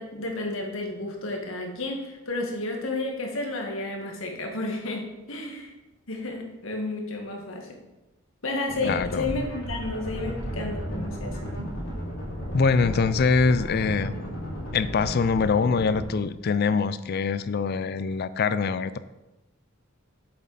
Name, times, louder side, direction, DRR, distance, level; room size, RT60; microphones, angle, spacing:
voice 1, 0.0-5.7 6.1-7.7 8.4-11.5, left 2 dB, 70° left, 2 dB, 1.7 m, -32 dB
sound 1, 8.7-16.0, equal, 85° left, 3.0 m, -34 dB
voice 2, 8.8-9.5 12.5-14.2 14.7-19.0, left 5 dB, 50° left, 14 dB, 0.4 m, -24 dB
7.6 x 7.5 x 4.1 m, 1.0 s
head